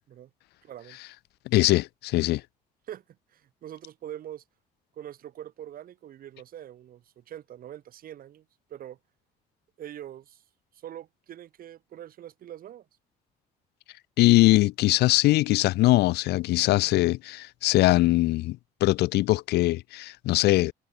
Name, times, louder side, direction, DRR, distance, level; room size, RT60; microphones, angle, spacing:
voice 1, 0.6-1.0 2.9-3.0 3.3-4.4 5.0-8.4 8.7-9.0 9.8-10.4 10.8-12.9, right 11 dB, 60° right, 4.0 m, -43 dB
voice 2, 1.5-2.4 14.2-20.7, left 18 dB, 75° left, 0.6 m, -22 dB
cardioid pair, 110°, 17 cm